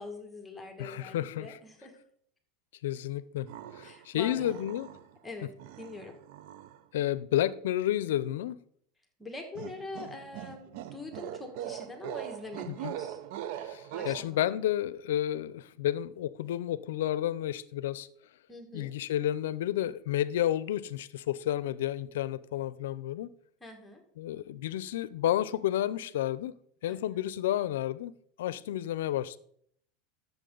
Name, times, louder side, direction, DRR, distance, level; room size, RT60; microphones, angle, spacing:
voice 1, 0.0-2.0 3.8-4.7 5.2-6.2 9.2-13.2 13.9-14.4 18.5-18.9 23.6-24.0 26.9-27.2 28.5-28.8, left 3 dB, 10° left, 1.9 m, -44 dB
voice 2, 0.8-1.5 2.8-3.5 3.7-4.9 6.9-8.6 12.7-12.9 13.6-18.1 18.7-23.3 24.2-26.5 26.8-29.4, left 12 dB, 85° left, 0.5 m, -31 dB
sound 1, 3.5-4.0 4.4-5.2 5.6-6.8 9.5-14.2, right 11 dB, 65° right, 0.6 m, -41 dB
12.5 x 7.3 x 3.9 m
supercardioid pair, 120°, 0 cm